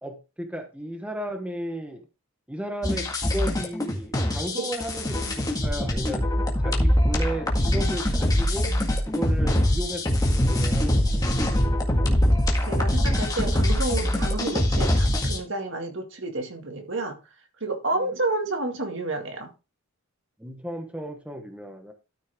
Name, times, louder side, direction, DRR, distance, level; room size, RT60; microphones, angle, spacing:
voice 1, 0.0-2.0 2.5-6.3 6.6-11.4 18.0-18.1 20.4-21.9, right 1 dB, 5° right, 1.1 m, -34 dB
sound 1, 2.8-15.4, left 1 dB, 15° left, 1.8 m, -23 dB
voice 2, 11.9-12.3 12.6-17.2 17.6-19.5, right 2 dB, 55° right, 2.2 m, -30 dB
13.0 x 6.3 x 3.6 m
head